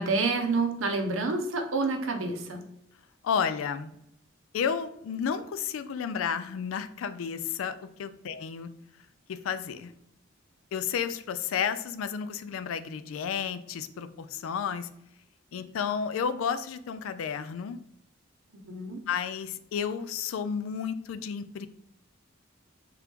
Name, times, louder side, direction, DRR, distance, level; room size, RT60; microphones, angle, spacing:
voice 1, 0.0-2.6 18.6-19.0, right 3 dB, 80° right, 4 dB, 0.7 m, -28 dB
voice 2, 3.2-3.9 4.5-8.7 9.3-9.9 10.7-14.9 15.5-17.8 19.1-21.7, left 7 dB, 85° left, 12 dB, 0.3 m, -32 dB
3.6 x 2.9 x 3.4 m, 0.77 s
head